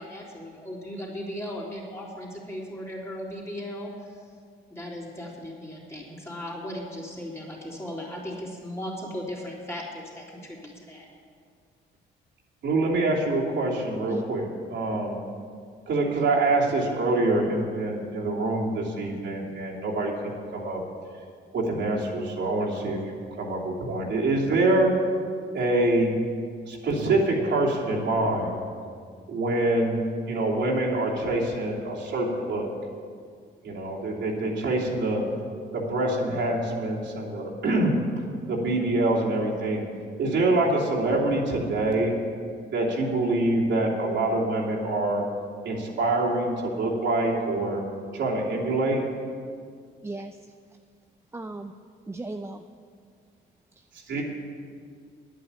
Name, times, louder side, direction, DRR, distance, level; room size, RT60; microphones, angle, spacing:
voice 1, 0.0-4.3 4.7-11.1, left 1 dB, 15° left, -4 dB, 3.6 m, -37 dB
voice 2, 12.6-15.2 15.9-20.1 20.5-20.8 21.5-24.9 25.5-26.1 26.7-28.5 29.3-32.7 33.6-35.2 35.7-38.0 38.5-39.8 40.2-42.2 42.7-45.2 45.6-47.8 48.1-49.0 54.1-54.2, right 2 dB, 70° right, -4 dB, 3.0 m, -25 dB
voice 3, 50.0-50.5 51.3-51.7 52.1-52.6 53.8-53.9, right 2 dB, 15° right, 7 dB, 0.5 m, -36 dB
10.0 x 9.0 x 8.5 m, 2.1 s
cardioid pair, 90°, 20 cm